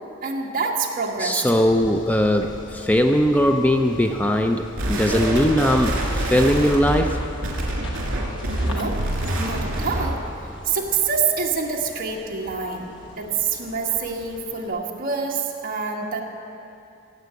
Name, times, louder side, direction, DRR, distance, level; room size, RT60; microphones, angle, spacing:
voice 1, 0.2-1.7 8.6-9.0 9.4-10.2 10.6-12.9 13.2-16.2, right 5 dB, 45° right, 0 dB, 1.6 m, -26 dB
voice 2, 1.2-7.2, equal, 10° left, 5 dB, 0.5 m, -20 dB
sound 1, 1.5-14.7, equal, 65° left, 1.4 m, -40 dB
sound 2, 4.8-10.2, right 1 dB, 75° right, 2.8 m, -26 dB
16.0 x 7.8 x 8.2 m, 2.7 s
head